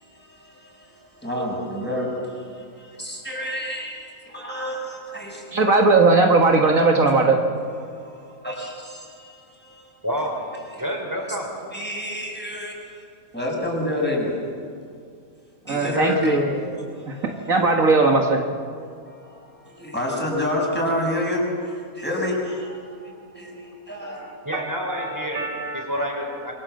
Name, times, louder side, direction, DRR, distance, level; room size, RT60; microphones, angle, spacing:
voice 1, 0.0-5.6 7.8-10.0 10.7-10.8 11.3-11.4 11.7-13.1 13.3-14.4 15.7-16.4 17.0-17.5 18.9-24.5, left 1 dB, 5° left, 6.3 m, -29 dB
voice 2, 5.5-7.5 15.7-16.5 17.1-18.5 24.0-24.3 24.5-26.4, right 3 dB, 65° right, 2.0 m, -19 dB
voice 3, 10.0-10.4 10.8-11.5 16.3-16.7 24.4-25.5 25.7-26.5, equal, 10° right, 5.0 m, -29 dB
27.5 x 23.5 x 7.7 m
omnidirectional pair, 1.5 m